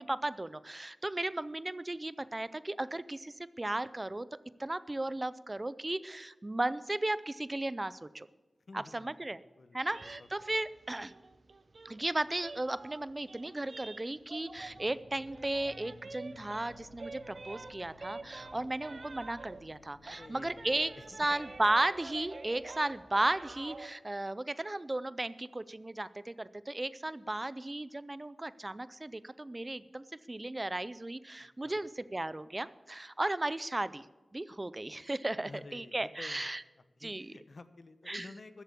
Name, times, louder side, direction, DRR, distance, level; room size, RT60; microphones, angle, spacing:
voice 1, 0.0-4.3 4.6-8.3 8.7-9.4 9.7-11.1 11.8-20.9 21.2-34.1 34.3-36.6 37.0-37.3 38.1-38.3, right 2 dB, 30° right, 17 dB, 0.5 m, -35 dB
voice 2, 8.7-10.3 18.3-18.8 20.1-21.1 31.4-31.9 35.4-36.5 37.0-38.6, left 3 dB, 65° left, 12 dB, 0.9 m, -52 dB
sound 1, 9.9-15.0 15.3-19.8 20.0-23.9, right 3 dB, 60° right, 0.9 m, -48 dB
sound 2, 14.5-21.8, left 3 dB, 90° left, 6.1 m, -58 dB
13.5 x 8.0 x 8.4 m, 1.2 s
wide cardioid pair, 70°, 0 cm